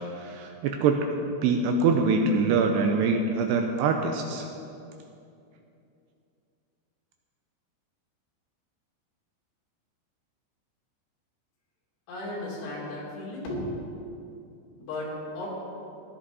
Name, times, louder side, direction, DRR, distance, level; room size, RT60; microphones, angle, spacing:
voice 1, 0.2-1.0 1.4-4.5, right 4 dB, 85° right, 3 dB, 2.4 m, -24 dB
voice 2, 12.1-13.7 14.8-15.5, left 1 dB, 75° left, -5 dB, 5.4 m, -35 dB
16.0 x 11.0 x 4.1 m, 2.6 s
omnidirectional pair, 5.4 m